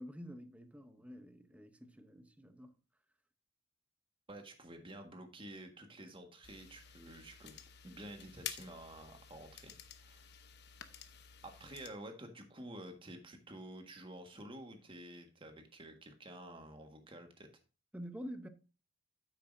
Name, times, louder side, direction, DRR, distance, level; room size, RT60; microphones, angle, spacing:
voice 1, 0.0-2.7 17.9-18.5, equal, 5° right, 0.7 m, -48 dB
voice 2, 4.3-9.7 10.0-10.3 11.4-17.5, right 1 dB, 25° right, 1.6 m, -50 dB
sound 1, 6.4-11.9, left 9 dB, 55° left, 0.9 m, -51 dB
9.5 x 8.0 x 2.6 m
head